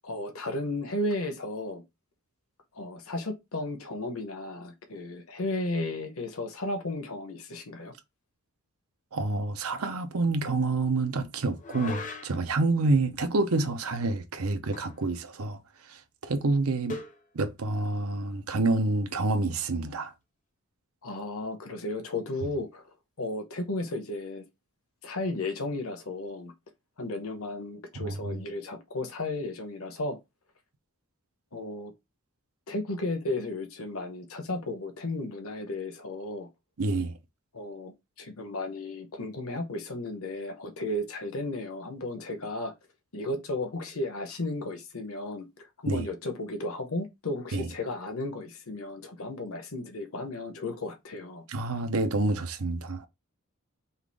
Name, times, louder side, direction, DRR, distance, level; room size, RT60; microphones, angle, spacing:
voice 1, 0.0-1.8 2.7-7.9 21.0-22.8 23.2-24.4 25.0-26.5 27.0-30.2 31.5-31.9 32.7-36.5 37.5-42.7 43.1-45.5 45.8-51.4, left 2 dB, 70° left, 1.0 m, -34 dB
voice 2, 9.1-15.6 15.9-17.0 17.3-20.1 28.0-28.4 36.8-37.2 45.9-46.0 47.5-47.7 51.5-53.1, right 2 dB, 75° right, 0.8 m, -28 dB
sound 1, 11.6-12.6 14.7-15.1 15.3-15.4 16.9-17.2, left 3 dB, 35° left, 0.7 m, -39 dB
5.6 x 2.5 x 3.4 m
head